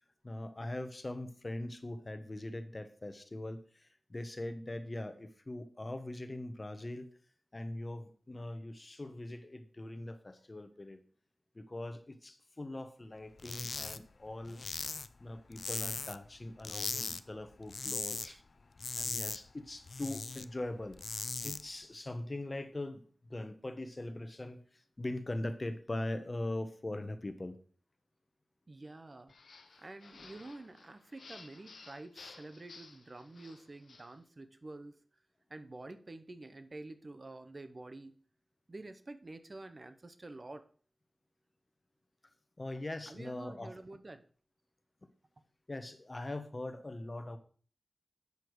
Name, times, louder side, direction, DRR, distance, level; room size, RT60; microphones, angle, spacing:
voice 1, 0.2-7.1 7.5-11.0 11.5-14.6 15.2-18.4 19.0-21.0 21.4-24.6 25.0-27.6 42.6-43.7 45.7-47.4, left 1 dB, 35° left, 10 dB, 1.0 m, -41 dB
sound 1, 13.4-14.0 14.3-16.3 16.6-17.2 17.5-18.3 18.6-20.4 20.8-21.6, left 4 dB, 65° left, 0.4 m, -39 dB
voice 2, 28.7-29.3 29.8-35.0 35.5-38.2 38.7-40.6 43.1-44.2, right 2 dB, 45° right, 10 dB, 0.8 m, -48 dB
sound 2, 29.3-34.2, left 4 dB, 85° left, 0.9 m, -55 dB
8.2 x 6.8 x 4.6 m, 0.44 s
wide cardioid pair, 65°, 0 cm